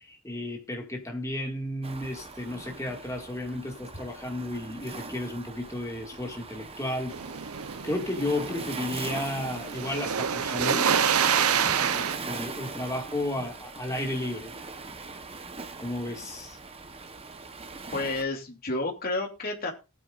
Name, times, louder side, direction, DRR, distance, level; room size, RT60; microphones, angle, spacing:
voice 1, 0.0-7.1 7.8-10.9 11.9-14.5 15.8-16.6, left 1 dB, 15° left, 2.0 m, -33 dB
Waves surf, 1.8-18.2, right 4 dB, 25° right, 0.9 m, -41 dB
sound 1, 7.1-12.2, right 7 dB, 80° right, 0.7 m, -27 dB
voice 2, 17.9-19.7, left 2 dB, 40° left, 2.7 m, -30 dB
19.0 x 9.2 x 2.5 m
head